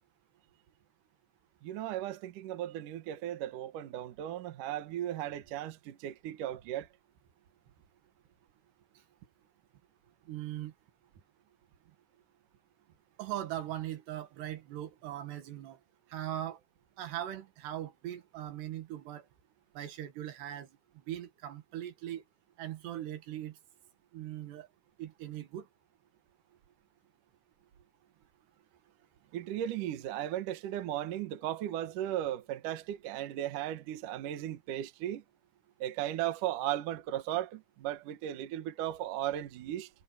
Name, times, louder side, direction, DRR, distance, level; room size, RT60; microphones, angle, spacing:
voice 1, 1.6-6.9 29.3-35.2 35.8-39.9, right 12 dB, 60° right, 2.5 m, -36 dB
voice 2, 10.3-10.7 13.2-15.8 16.1-16.6 17.0-19.3 19.8-22.2 22.6-23.6 24.1-24.7 25.0-25.7, right 12 dB, 80° right, 3.9 m, -40 dB
omnidirectional pair, 4.8 m